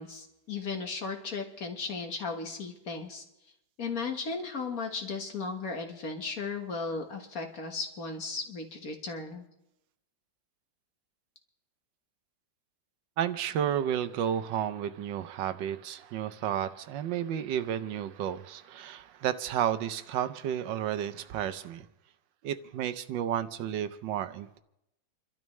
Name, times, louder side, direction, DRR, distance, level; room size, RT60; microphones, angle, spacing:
voice 1, 0.0-3.2 3.8-9.5, left 4 dB, 50° left, 4 dB, 1.7 m, -36 dB
voice 2, 13.2-21.9 22.4-24.6, right 10 dB, 80° right, 11 dB, 1.4 m, -32 dB
29.0 x 12.5 x 3.2 m, 0.86 s
omnidirectional pair, 2.0 m